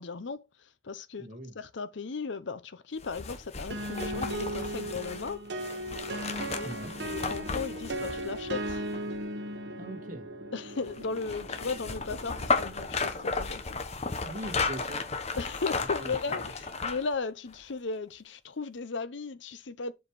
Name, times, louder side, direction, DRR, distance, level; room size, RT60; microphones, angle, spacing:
voice 1, 0.0-1.3 1.5-5.4 6.5-6.7 7.0-8.9 10.5-13.8 15.4-19.9, left 4 dB, 70° left, 0.7 m, -36 dB
voice 2, 1.2-1.5 6.6-6.9 9.8-10.3 14.2-15.1 16.0-16.5, right 1 dB, 45° right, 2.0 m, -41 dB
sound 1, 3.0-9.2 10.8-17.1 17.5-17.6, left 4 dB, 35° left, 1.0 m, -34 dB
sound 2, 3.7-13.3, right 1 dB, 60° right, 1.1 m, -37 dB
7.7 x 4.8 x 4.7 m
head